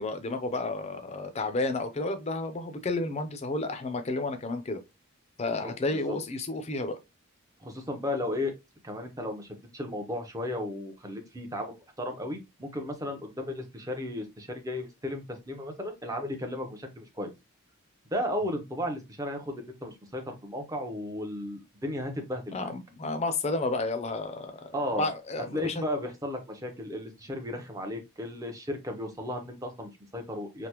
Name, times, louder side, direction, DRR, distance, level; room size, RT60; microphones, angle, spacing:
voice 1, 0.0-4.8 5.4-7.0 22.5-25.9, left 2 dB, 30° left, 0.5 m, -31 dB
voice 2, 5.4-6.2 7.6-8.5 8.8-17.3 18.1-22.7 24.7-25.1 25.5-30.7, left 1 dB, 15° right, 0.6 m, -35 dB
3.3 x 2.0 x 2.9 m
head